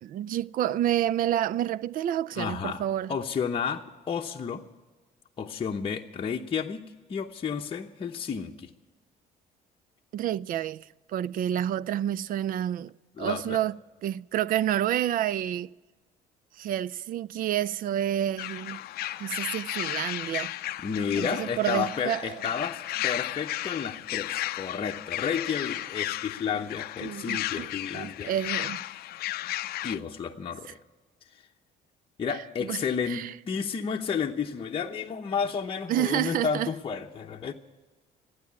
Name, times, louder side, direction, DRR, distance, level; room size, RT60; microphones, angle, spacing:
voice 1, 0.0-3.1 10.1-13.8 14.0-15.7 16.6-18.8 19.2-20.5 21.2-22.2 27.0-28.8 32.6-33.3 35.9-36.7, right 11 dB, 55° right, 0.4 m, -29 dB
voice 2, 2.3-2.8 3.1-4.6 5.4-8.7 13.2-13.6 20.8-28.3 29.8-30.8 32.2-37.5, left 6 dB, 30° left, 0.8 m, -31 dB
sound 1, 18.4-30.0, left 15 dB, 65° left, 0.5 m, -34 dB
15.0 x 9.5 x 9.5 m
cardioid pair, 110°, 17 cm